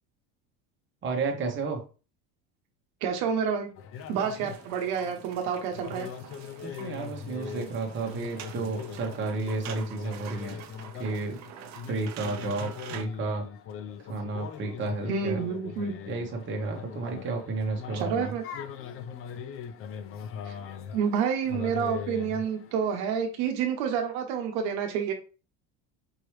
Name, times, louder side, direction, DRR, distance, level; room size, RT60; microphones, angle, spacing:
voice 1, 1.0-1.8 6.6-10.6 10.9-11.4 11.9-13.4 14.0-15.4 16.1-18.4, right 3 dB, 30° right, 1 dB, 1.1 m, -32 dB
voice 2, 3.0-3.7 4.1-6.1 15.1-15.9 17.9-18.4 20.5-20.6 20.9-25.1, right 7 dB, 75° right, 4 dB, 1.0 m, -29 dB
sound 1, 3.8-23.0, left 7 dB, 35° left, 0.4 m, -41 dB
sound 2, 3.9-13.0, right 8 dB, 45° right, 0.7 m, -46 dB
4.7 x 2.9 x 3.2 m, 0.34 s
cardioid pair, 135°, 38 cm